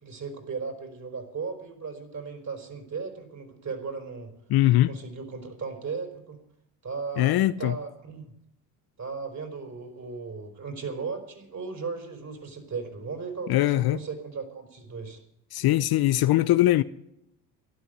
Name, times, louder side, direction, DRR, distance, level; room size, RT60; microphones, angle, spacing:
voice 1, 0.0-4.3 4.9-6.4 6.8-8.3 9.0-15.2, right 5 dB, 35° right, 5.0 m, -36 dB
voice 2, 4.5-4.9 7.2-7.8 13.5-14.0 15.5-16.8, left 15 dB, 55° left, 0.7 m, -21 dB
13.0 x 11.5 x 8.0 m
supercardioid pair, 80°, 46 cm